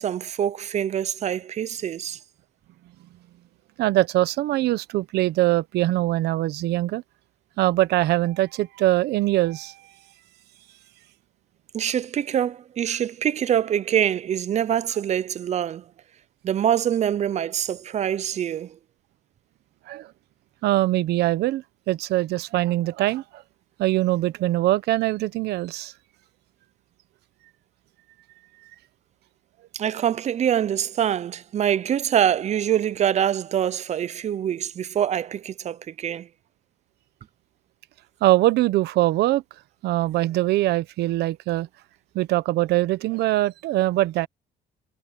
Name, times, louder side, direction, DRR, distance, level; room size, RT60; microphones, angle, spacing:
voice 1, 0.0-2.2 11.7-15.8 16.4-18.8 29.7-36.3, right 9 dB, 40° right, 0.6 m, -24 dB
voice 2, 3.8-7.0 7.6-9.7 19.9-20.1 20.6-23.2 23.8-25.9 38.2-39.4 39.8-41.7 42.1-44.3, right 16 dB, 75° right, 0.9 m, -22 dB
cardioid pair, 110°, 17 cm